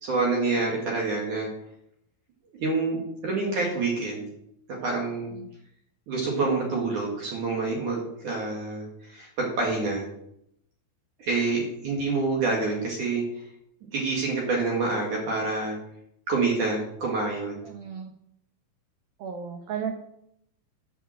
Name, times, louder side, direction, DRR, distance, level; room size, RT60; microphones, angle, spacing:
voice 1, 0.0-1.5 2.5-4.2 4.7-5.3 6.1-10.1 11.2-13.2 13.9-15.8 16.3-17.6, right 3 dB, 50° right, -2 dB, 2.7 m, -27 dB
voice 2, 17.6-18.1 19.2-19.9, right 7 dB, 85° right, 2 dB, 2.1 m, -34 dB
10.0 x 5.8 x 7.6 m, 0.74 s
omnidirectional pair, 5.8 m